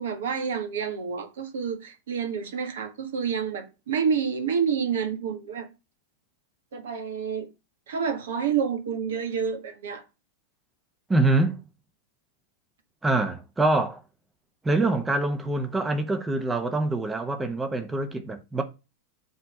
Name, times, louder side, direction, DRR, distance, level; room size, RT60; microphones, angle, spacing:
voice 1, 0.0-5.7 6.7-7.5 7.9-10.0, right 6 dB, 60° right, 1.5 m, -28 dB
voice 2, 11.1-11.6 13.0-14.0 14.6-18.6, right 2 dB, 10° right, 1.1 m, -25 dB
8.0 x 3.4 x 6.5 m
figure-of-eight pair, 90°, 0 cm